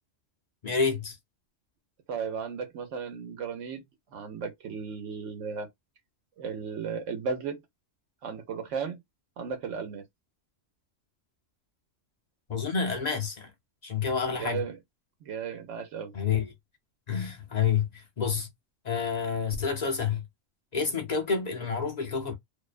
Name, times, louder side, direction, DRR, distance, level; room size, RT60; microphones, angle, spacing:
voice 1, 0.6-1.2 12.5-13.5 13.8-14.6 16.1-16.5 17.1-18.5 18.8-20.3 20.7-22.3, left 6 dB, 45° left, 0.6 m, -29 dB
voice 2, 2.1-3.8 4.1-5.7 6.4-7.6 8.2-9.0 9.4-10.0 14.2-14.8 15.2-16.1, right 6 dB, 75° right, 1.0 m, -35 dB
2.6 x 2.1 x 2.3 m
omnidirectional pair, 1.3 m